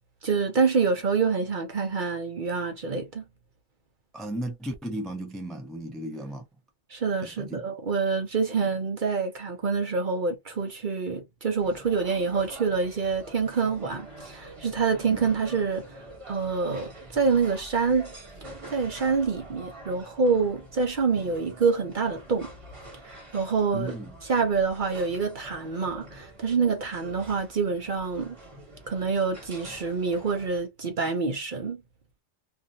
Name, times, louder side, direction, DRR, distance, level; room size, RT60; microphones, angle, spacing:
voice 1, 0.2-3.2 6.9-16.0 16.3-18.1 18.7-22.5 23.0-28.4 28.9-31.8, right 5 dB, 50° right, 0.7 m, -26 dB
voice 2, 4.1-6.4 7.2-7.6 15.1-15.3 23.7-24.1, right 1 dB, ahead, 0.3 m, -35 dB
sound 1, 11.6-30.6, right 1 dB, 25° right, 1.2 m, -46 dB
2.6 x 2.5 x 2.6 m
omnidirectional pair, 1.3 m